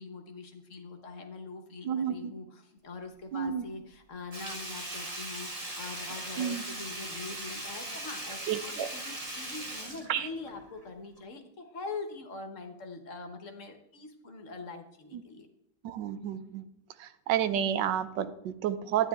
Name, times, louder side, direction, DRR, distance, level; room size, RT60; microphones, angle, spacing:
voice 1, 0.0-15.5, left 3 dB, 50° left, 6 dB, 1.4 m, -43 dB
voice 2, 1.8-2.3 3.3-3.6 6.4-6.6 8.5-8.9 10.1-10.3 15.1-15.2 15.8-16.7 17.0-19.1, right 9 dB, 80° right, 12 dB, 1.4 m, -30 dB
Sink (filling or washing), 4.3-10.8 11.2-11.3, right 1 dB, 25° right, 1.1 m, -39 dB
12.5 x 9.5 x 3.6 m, 0.82 s
omnidirectional pair, 1.9 m